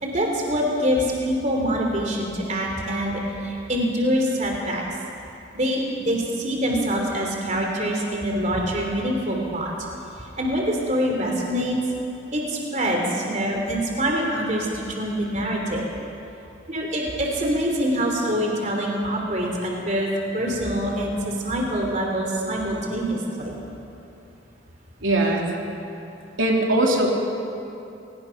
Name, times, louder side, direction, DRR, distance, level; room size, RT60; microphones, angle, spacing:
voice 1, 0.0-4.8 5.5-9.7 10.2-11.8 12.3-15.9 16.7-23.6, equal, 40° right, 0 dB, 3.3 m, -25 dB
voice 2, 25.0-25.5 26.4-27.1, right 1 dB, 85° right, -1 dB, 3.2 m, -20 dB
29.5 x 18.5 x 5.9 m, 2.8 s
head